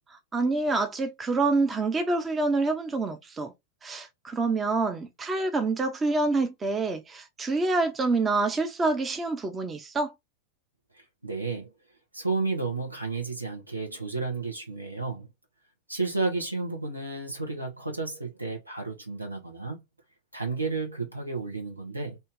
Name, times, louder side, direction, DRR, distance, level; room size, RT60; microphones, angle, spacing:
voice 1, 0.3-3.5 3.8-10.1, right 3 dB, 20° right, 0.6 m, -27 dB
voice 2, 10.9-11.7 12.1-15.3 15.9-19.8 20.3-22.2, right 3 dB, 85° right, 1.1 m, -32 dB
2.7 x 2.7 x 3.6 m
figure-of-eight pair, 90°, 0 cm